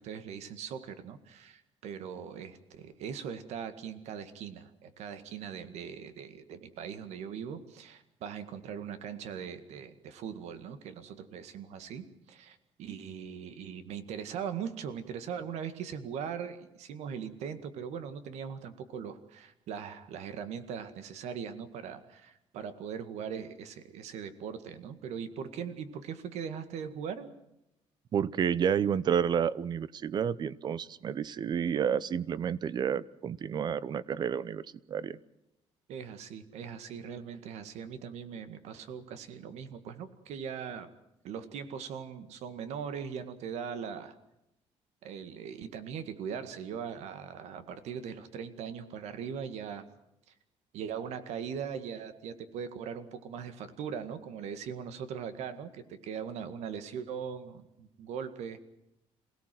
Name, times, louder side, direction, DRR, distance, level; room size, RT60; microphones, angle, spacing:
voice 1, 0.0-27.3 35.9-40.9 41.2-44.1 45.0-49.9 50.7-58.6, right 7 dB, 80° right, 10 dB, 2.0 m, -40 dB
voice 2, 28.1-35.2, right 8 dB, 40° right, 19 dB, 0.8 m, -30 dB
27.0 x 17.5 x 7.8 m, 0.86 s
cardioid pair, 155°, 11 cm